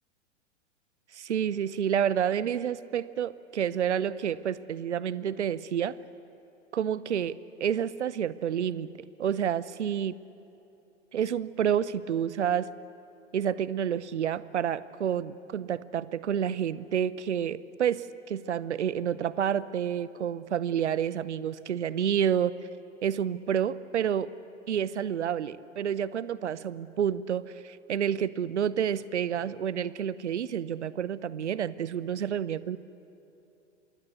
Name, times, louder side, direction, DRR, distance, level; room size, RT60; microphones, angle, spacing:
voice 1, 1.1-6.0 6.7-8.9 9.2-10.2 11.1-12.7 13.3-22.5 23.0-24.3 24.7-32.8, right 9 dB, 65° right, 18 dB, 0.8 m, -29 dB
26.0 x 22.0 x 8.4 m, 2.9 s
figure-of-eight pair, 100°, 37 cm